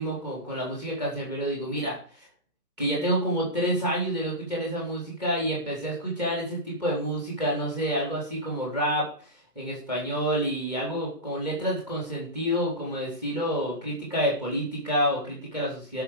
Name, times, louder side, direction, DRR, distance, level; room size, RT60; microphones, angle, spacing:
voice 1, 0.0-2.0 2.8-9.1 9.5-16.0, equal, 5° right, -3 dB, 3.0 m, -28 dB
12.5 x 5.9 x 6.5 m, 0.42 s
figure-of-eight pair, 160°, 49 cm